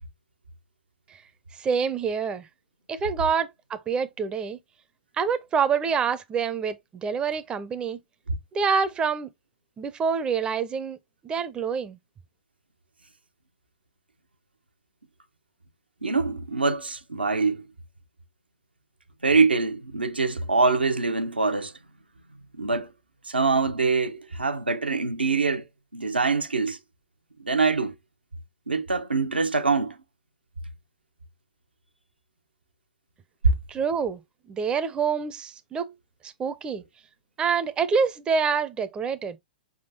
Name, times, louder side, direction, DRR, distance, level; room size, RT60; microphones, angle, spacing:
voice 1, 1.5-2.5 2.9-4.6 5.2-8.0 8.5-9.3 9.8-11.0 11.2-12.0 33.7-34.2 34.5-35.9 36.2-36.8 37.4-39.4, right 6 dB, 15° right, 0.5 m, -26 dB
voice 2, 16.0-17.7 19.2-21.7 22.5-22.9 23.3-25.7 25.9-26.8 27.4-27.9 28.7-30.0, right 4 dB, 90° right, 0.7 m, -24 dB
5.0 x 3.6 x 2.6 m
figure-of-eight pair, 110°, 5 cm